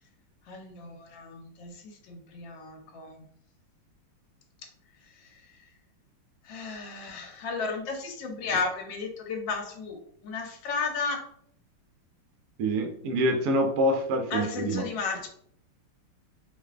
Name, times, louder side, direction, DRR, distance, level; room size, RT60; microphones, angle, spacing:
voice 1, 0.5-3.2 5.1-5.5 6.4-11.2 14.3-15.3, left 4 dB, 70° left, 3 dB, 1.2 m, -34 dB
voice 2, 12.6-14.8, right 1 dB, 80° right, 3 dB, 0.8 m, -26 dB
4.5 x 2.5 x 2.4 m, 0.65 s
omnidirectional pair, 2.3 m